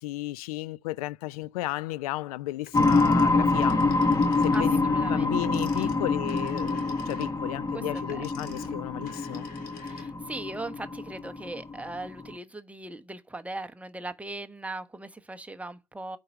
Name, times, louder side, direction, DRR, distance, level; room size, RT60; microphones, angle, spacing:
voice 1, 0.0-3.8 4.4-9.5, left 17 dB, 70° left, 0.4 m, -34 dB
Telephone, 2.6-4.7 5.4-10.4, left 6 dB, 50° left, 3.5 m, -48 dB
sound 1, 2.7-12.3, left 3 dB, 15° left, 1.1 m, -26 dB
voice 2, 4.5-5.9 7.7-7.8 8.1-8.2 9.8-16.2, right 2 dB, 5° right, 1.0 m, -39 dB
8.8 x 4.5 x 6.9 m
figure-of-eight pair, 65°, 20 cm